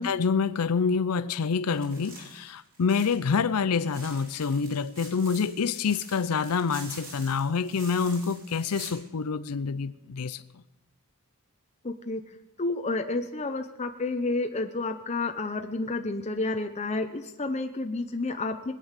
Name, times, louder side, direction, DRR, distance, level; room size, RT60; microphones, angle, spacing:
voice 1, 0.0-10.6, left 5 dB, 75° left, 0.5 m, -27 dB
sound 1, 1.7-3.3 3.7-8.9, right 2 dB, 40° right, 5.5 m, -46 dB
voice 2, 11.8-12.2 12.6-18.7, left 2 dB, 30° left, 0.8 m, -30 dB
21.0 x 9.3 x 6.6 m
head